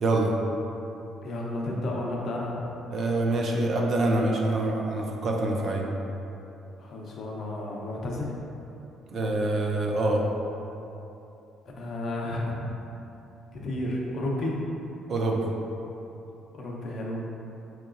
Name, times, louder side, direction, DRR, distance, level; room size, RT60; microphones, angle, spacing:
voice 1, 0.0-0.3 2.9-5.9 9.1-10.2 15.1-15.5, right 2 dB, 45° right, 0 dB, 0.4 m, -25 dB
voice 2, 1.2-2.6 6.8-8.3 11.8-12.7 13.5-14.6 16.5-17.2, left 1 dB, 45° left, -3 dB, 0.6 m, -32 dB
4.7 x 2.9 x 2.5 m, 2.9 s
cardioid pair, 145°, 0 cm